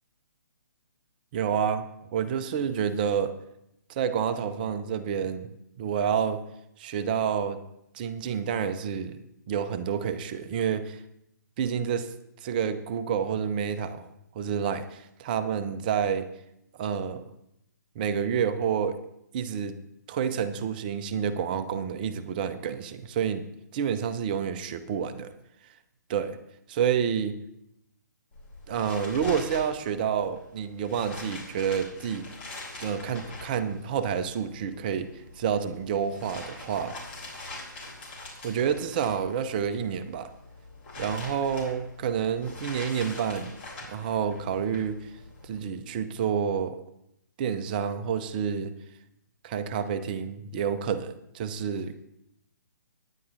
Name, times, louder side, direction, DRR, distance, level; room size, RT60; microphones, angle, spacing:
voice 1, 1.3-1.8 2.1-3.3 3.9-5.5 5.8-6.4 6.8-7.6 7.9-9.2 9.5-11.0 11.6-12.1 12.4-14.1 14.3-16.3 16.8-17.2 18.0-19.0 19.3-19.8 20.1-23.5 23.7-25.3 26.1-26.4 26.7-27.4 28.7-32.3 32.8-35.1 35.4-36.9 38.4-40.3 41.0-43.5 43.9-45.1 45.4-46.8 47.4-48.7 49.4-51.9, right 7 dB, 25° right, 11 dB, 0.6 m, -29 dB
sound 1, 28.3-45.6, left 2 dB, 35° left, 3.8 m, -43 dB
18.0 x 9.9 x 2.6 m, 0.80 s
figure-of-eight pair, 130°, 10 cm